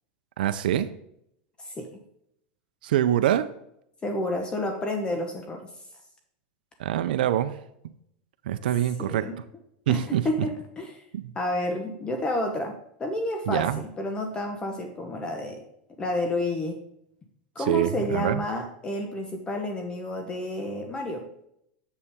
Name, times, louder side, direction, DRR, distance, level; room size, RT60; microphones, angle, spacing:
voice 1, 0.4-0.9 2.8-3.5 6.8-7.6 8.5-9.3 9.9-10.2 11.1-11.3 13.5-13.8 17.7-18.4, right 11 dB, 85° right, 11 dB, 0.5 m, -24 dB
voice 2, 4.0-5.6 9.0-9.4 9.9-11.0 11.3-15.6 16.0-16.8 17.5-21.3, left 1 dB, 20° left, 4 dB, 1.0 m, -30 dB
7.1 x 6.9 x 3.6 m, 0.76 s
supercardioid pair, 135°, 5 cm